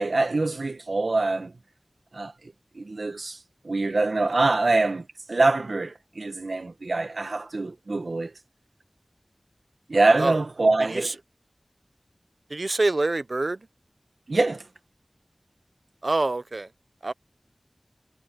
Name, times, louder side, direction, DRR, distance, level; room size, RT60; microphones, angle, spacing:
voice 1, 0.0-1.5 2.1-3.4 3.6-8.3 9.9-11.2 14.3-14.7, right 3 dB, 80° right, 1.5 m, -24 dB
voice 2, 12.5-13.6 16.0-16.7 17.0-17.1, right 2 dB, 60° right, 0.8 m, -25 dB
wide cardioid pair, 60°, 0 cm